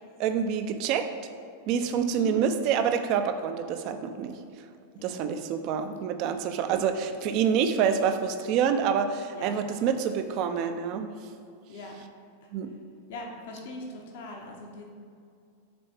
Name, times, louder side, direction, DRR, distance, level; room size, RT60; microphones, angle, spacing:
voice 1, 0.2-1.1 1.7-4.7 5.0-11.1 12.5-12.7, right 7 dB, 40° right, 8 dB, 0.5 m, -27 dB
voice 2, 2.1-2.4 5.0-5.2 9.3-9.6 11.7-11.9 12.4-12.5 13.1-14.8, left 2 dB, 55° left, 0 dB, 1.0 m, -40 dB
6.0 x 4.1 x 6.1 m, 2.3 s
figure-of-eight pair, 90°, 0 cm